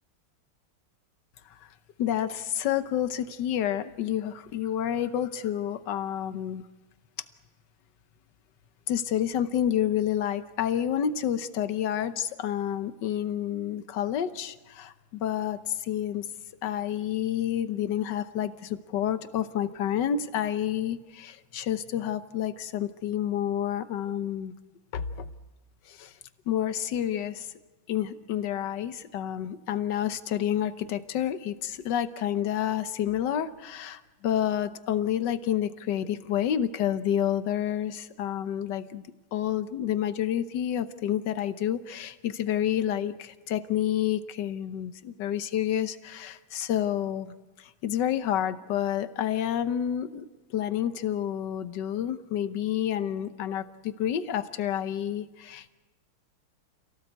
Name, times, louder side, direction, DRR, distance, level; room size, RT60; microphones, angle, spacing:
voice 1, 2.0-6.6 8.9-16.2 16.6-24.5 24.9-25.3 25.9-26.1 26.5-27.5 27.9-55.7, left 10 dB, 60° left, 12 dB, 1.4 m, -29 dB
28.0 x 17.5 x 8.1 m, 1.2 s
omnidirectional pair, 2.3 m